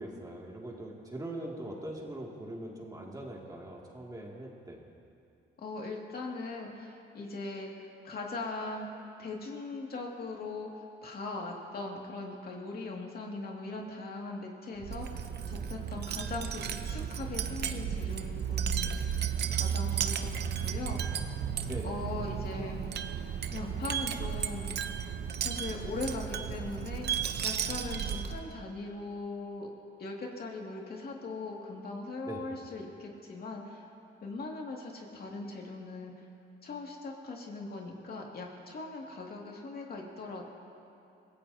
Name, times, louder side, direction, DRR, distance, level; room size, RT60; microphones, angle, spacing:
voice 1, 0.0-4.8 21.7-21.9 32.2-32.4, right 1 dB, 20° right, -2 dB, 2.5 m, -41 dB
voice 2, 5.6-8.9 9.2-19.1 19.5-21.2 21.8-22.8 23.5-25.1 25.4-29.7 30.0-33.8 34.2-36.2 36.6-40.5, left 3 dB, 50° left, -1 dB, 2.3 m, -40 dB
Wind chime, 14.8-28.5, right 8 dB, 55° right, 0.8 m, -34 dB
24.5 x 16.5 x 2.8 m, 2.6 s
cardioid pair, 90°, 20 cm